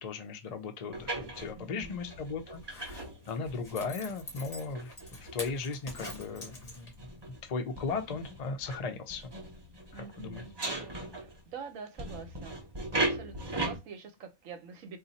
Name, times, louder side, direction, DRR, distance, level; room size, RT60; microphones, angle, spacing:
voice 1, 0.0-7.1 7.4-9.3 9.9-10.4, left 4 dB, 50° left, 0.4 m, -37 dB
sound 1, 0.9-11.6 12.0-13.8, right 2 dB, 30° right, 0.5 m, -39 dB
voice 2, 1.5-2.1 9.9-10.6 11.1-12.6 13.0-15.0, right 5 dB, 70° right, 1.1 m, -46 dB
Zipper (clothing), 2.5-7.1 7.5-7.6, left 2 dB, 35° left, 0.8 m, -45 dB
2.6 x 2.4 x 4.0 m
omnidirectional pair, 1.5 m